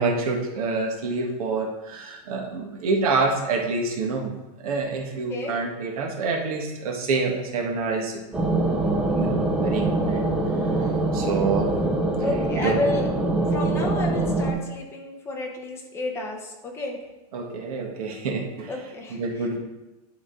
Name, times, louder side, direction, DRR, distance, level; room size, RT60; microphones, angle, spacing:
voice 1, 0.0-4.3 4.6-10.3 11.1-11.7 12.6-12.8 17.3-18.7 19.1-19.6, right 4 dB, 60° right, 2 dB, 1.4 m, -27 dB
sound 1, 8.3-14.5, right 2 dB, 5° right, 0.3 m, -24 dB
voice 2, 12.2-13.1 13.5-17.0 18.7-19.2, left 2 dB, 10° left, 0 dB, 0.9 m, -30 dB
10.5 x 3.8 x 3.8 m, 1.0 s
supercardioid pair, 170°, 21 cm